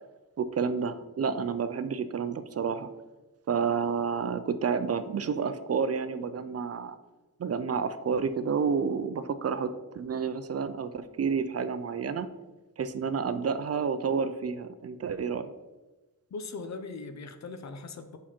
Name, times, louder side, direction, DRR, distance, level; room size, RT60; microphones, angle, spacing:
voice 1, 0.4-2.9 3.5-7.0 7.4-12.3 12.8-15.5, right 6 dB, 45° right, 11 dB, 0.5 m, -30 dB
voice 2, 16.3-18.2, left 3 dB, 55° left, 9 dB, 0.7 m, -39 dB
7.3 x 5.8 x 4.4 m, 1.1 s
wide cardioid pair, 135°, 33 cm